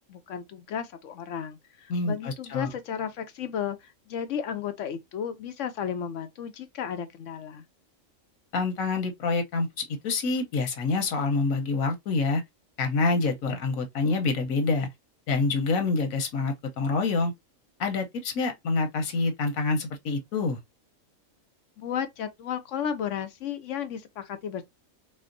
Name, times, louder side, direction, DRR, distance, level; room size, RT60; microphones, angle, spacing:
voice 1, 0.0-7.6 21.8-24.6, left 8 dB, 70° left, 0.9 m, -34 dB
voice 2, 1.9-2.7 8.5-12.4 12.8-14.9 15.3-17.3 17.8-20.6, left 3 dB, 85° left, 1.3 m, -27 dB
4.3 x 2.1 x 2.5 m
omnidirectional pair, 1.4 m